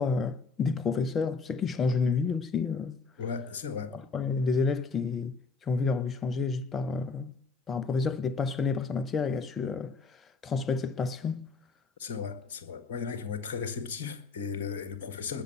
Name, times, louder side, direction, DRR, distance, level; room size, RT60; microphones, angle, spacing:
voice 1, 0.0-3.0 3.9-5.4 5.6-7.3 7.7-11.5, left 4 dB, 20° left, 0.8 m, -29 dB
voice 2, 3.2-3.9 12.0-15.4, left 6 dB, 50° left, 1.7 m, -36 dB
19.5 x 6.7 x 8.3 m
figure-of-eight pair, 90°, 0 cm